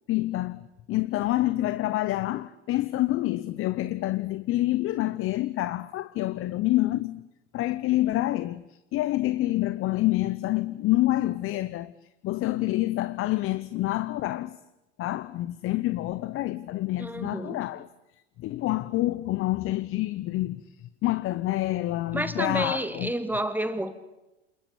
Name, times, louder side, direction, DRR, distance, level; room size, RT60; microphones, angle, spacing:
voice 1, 0.1-7.3 7.5-8.6 8.9-11.9 12.2-14.6 15.0-17.9 18.4-20.6 21.0-23.1, left 16 dB, 35° left, 1.0 m, -27 dB
voice 2, 17.0-17.6 22.1-23.9, right 1 dB, 5° right, 2.0 m, -30 dB
27.5 x 21.0 x 8.6 m
hypercardioid pair, 100°, 36 cm